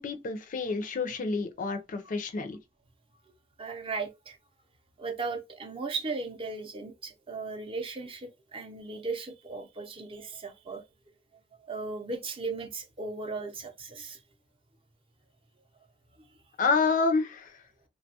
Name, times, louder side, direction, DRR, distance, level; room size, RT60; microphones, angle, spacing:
voice 1, 0.0-2.6 16.6-17.5, left 4 dB, 45° left, 0.4 m, -28 dB
voice 2, 3.6-4.4 5.0-10.8 11.6-14.2 16.2-16.3, right 3 dB, 30° right, 0.5 m, -37 dB
3.2 x 2.2 x 2.7 m
head